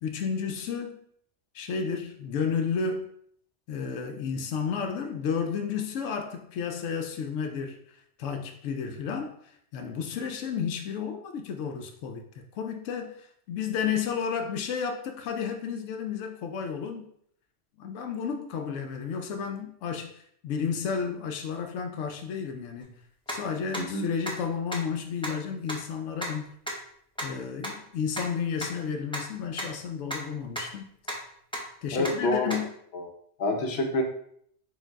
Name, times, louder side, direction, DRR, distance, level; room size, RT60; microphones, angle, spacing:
voice 1, 0.0-1.0 1.5-3.1 3.7-17.1 17.8-23.0 23.3-26.5 27.2-30.9 31.8-32.7, left 6 dB, 90° left, 5 dB, 0.9 m, -32 dB
sound 1, 22.8-22.9 23.3-23.4 23.7-23.8 24.3-24.4 24.7-24.8 25.2-25.3 25.7-25.8 26.2-26.3 26.7-26.8 27.2-27.3 27.6-27.7 28.2-28.3 28.6-28.7 29.1-29.2 29.6-29.7 30.1-30.2 30.6-30.7 31.1-31.2 31.5-31.6 32.0-32.1 32.5-32.6, equal, 5° left, 0.7 m, -32 dB
voice 2, 31.9-32.6 32.9-33.1 33.4-34.0, left 2 dB, 60° left, 3 dB, 1.0 m, -27 dB
4.4 x 2.6 x 4.5 m, 0.66 s
omnidirectional pair, 1.2 m